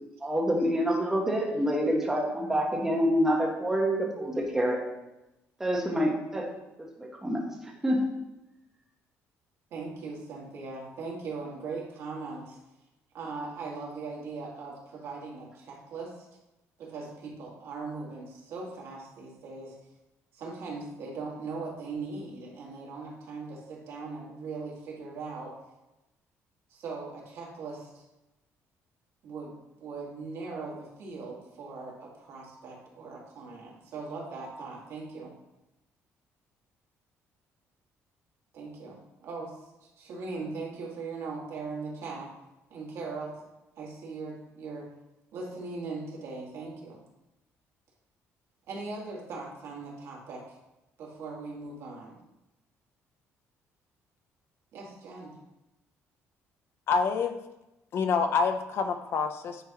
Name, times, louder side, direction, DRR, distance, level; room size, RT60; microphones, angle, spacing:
voice 1, 0.2-4.8 5.6-6.5 7.0-7.4 7.8-8.0, equal, 10° right, -2 dB, 1.2 m, -27 dB
voice 2, 9.7-12.6 13.1-16.2 16.8-19.8 20.3-25.5 26.7-28.0 29.2-35.3 38.5-42.3 42.7-43.4 43.8-44.9 45.3-47.0 48.7-50.4 51.0-52.2 54.7-55.4, right 4 dB, 65° right, -3 dB, 2.0 m, -39 dB
voice 3, 56.9-57.4 57.9-59.6, left 5 dB, 50° left, 8 dB, 0.6 m, -27 dB
9.4 x 4.5 x 3.0 m, 0.96 s
cardioid pair, 160°, 5 cm